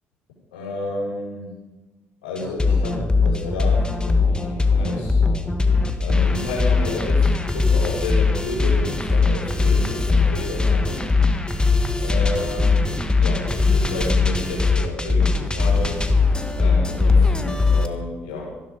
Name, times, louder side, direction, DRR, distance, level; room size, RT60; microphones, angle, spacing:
voice 1, 0.5-1.5 2.2-5.2 5.6-5.7 6.0-11.1 12.0-16.3 16.5-18.5, left 2 dB, 85° left, -3 dB, 5.8 m, -31 dB
sound 1, 2.4-17.9, left 4 dB, 15° left, 1.8 m, -20 dB
14.5 x 12.5 x 5.4 m, 1.2 s
hypercardioid pair, 55°, 6 cm